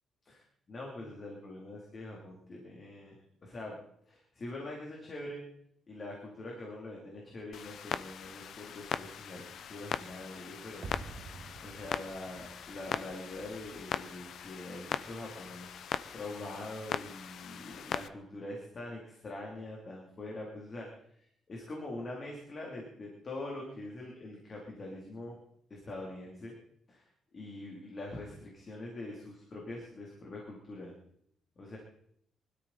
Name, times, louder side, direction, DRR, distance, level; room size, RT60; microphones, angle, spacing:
voice 1, 0.2-3.2 3.4-3.8 4.1-5.4 5.9-10.9 11.2-15.8 16.1-25.4 25.7-26.5 26.9-30.9 31.6-31.8, left 2 dB, 30° left, -2 dB, 2.9 m, -44 dB
Clock, 7.5-18.1, left 8 dB, 60° left, 0.7 m, -40 dB
sound 1, 10.8-15.8 16.0-16.1, right 3 dB, 35° right, 2.3 m, -50 dB
24.0 x 13.0 x 4.1 m, 0.70 s
cardioid pair, 175°, 0 cm